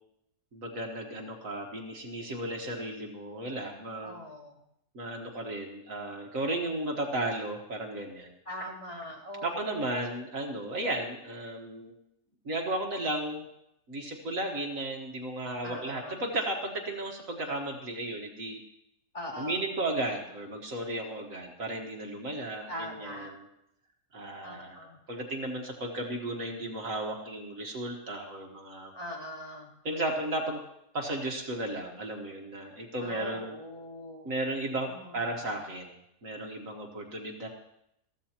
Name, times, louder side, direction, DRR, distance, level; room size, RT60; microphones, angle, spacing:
voice 1, 0.5-4.2 4.9-8.3 9.4-11.9 12.4-13.5 13.9-18.6 19.4-23.4 24.1-28.9 29.8-30.6 30.9-33.6 34.2-36.0 36.2-37.5, right 1 dB, 55° right, 1 dB, 1.8 m, -34 dB
voice 2, 4.0-4.6 8.4-9.7 15.6-16.2 19.1-19.6 22.7-23.3 24.4-25.0 28.9-29.7 33.0-34.3 34.9-35.4, equal, 20° left, -6 dB, 3.2 m, -41 dB
21.0 x 14.5 x 2.9 m, 0.80 s
omnidirectional pair, 1.7 m